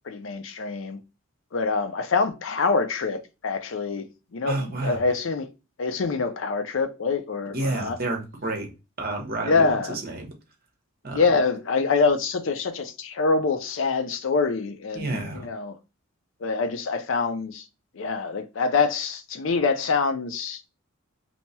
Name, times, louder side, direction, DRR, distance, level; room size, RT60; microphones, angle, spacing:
voice 1, 0.1-1.0 1.5-5.5 5.8-8.0 9.4-10.0 11.1-15.8 16.4-17.6 17.9-20.6, left 4 dB, 65° left, 0.5 m, -25 dB
voice 2, 4.4-5.0 7.5-8.7 9.0-10.3 11.0-11.2 14.9-15.5, right 2 dB, 45° right, 0.9 m, -30 dB
2.8 x 2.2 x 4.1 m
head